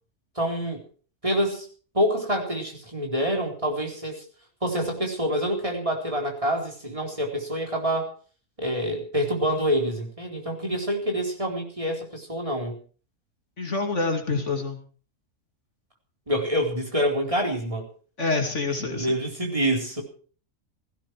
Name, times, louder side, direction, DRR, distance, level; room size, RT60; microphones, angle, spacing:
voice 1, 0.4-0.8 1.2-1.7 1.9-4.2 4.6-8.1 8.6-12.8 16.3-17.9 18.9-20.0, equal, 25° right, 1 dB, 4.3 m, -26 dB
voice 2, 13.6-14.8 18.2-19.1, left 3 dB, 55° left, 4 dB, 3.0 m, -26 dB
17.5 x 15.5 x 4.8 m, 0.41 s
omnidirectional pair, 1.4 m